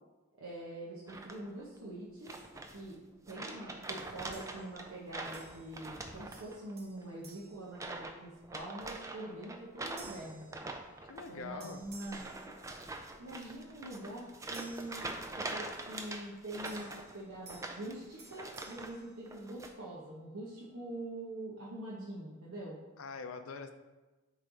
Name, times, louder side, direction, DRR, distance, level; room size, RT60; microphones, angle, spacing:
voice 1, 0.4-2.4 2.7-3.0 3.3-10.5 11.3-12.2 13.2-22.8, right 1 dB, 70° right, -6 dB, 0.9 m, -44 dB
sound 1, 1.1-1.6 2.2-2.9 3.3-6.7 7.0-7.3 7.7-8.2 8.4-18.9 19.3-19.7, right 2 dB, 15° right, 0.3 m, -44 dB
sound 2, 4.3-5.0 5.3-6.0 6.3-8.5 9.0-9.3 10.0-11.3 11.6-13.2 14.5-15.7 16.6-19.9, right 3 dB, 45° right, 0.9 m, -58 dB
voice 2, 11.1-11.8 23.0-23.7, left 5 dB, 75° left, 7 dB, 0.5 m, -44 dB
8.2 x 3.3 x 3.9 m, 1.2 s
head